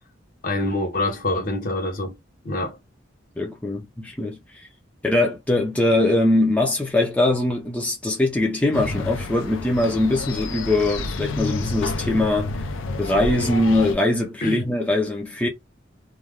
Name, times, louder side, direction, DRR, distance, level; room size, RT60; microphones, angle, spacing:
voice 1, 0.4-2.2 2.4-2.8 14.4-14.6, left 2 dB, 45° left, 0.7 m, -25 dB
voice 2, 3.4-4.6 5.0-12.7 13.0-15.5, left 1 dB, 5° left, 0.4 m, -22 dB
sound 1, 8.7-14.0, left 3 dB, 80° left, 0.4 m, -29 dB
2.3 x 2.1 x 3.3 m
head